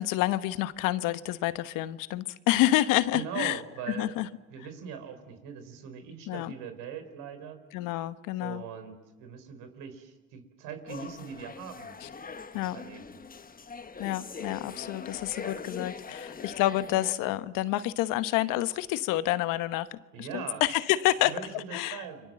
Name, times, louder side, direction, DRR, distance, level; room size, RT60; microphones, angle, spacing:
voice 1, 0.0-3.6 3.9-4.3 6.3-6.5 7.7-8.6 12.0-12.1 12.5-12.8 14.0-22.0, left 15 dB, 80° left, 14 dB, 1.1 m, -28 dB
voice 2, 3.1-4.1 4.5-7.6 8.4-12.0 12.5-13.0 20.1-20.6 21.2-22.3, right 7 dB, 80° right, 8 dB, 4.3 m, -41 dB
sound 1, 10.9-17.2, left 5 dB, 25° left, 1.3 m, -42 dB
29.5 x 24.5 x 7.6 m, 1.2 s
supercardioid pair, 70°, 32 cm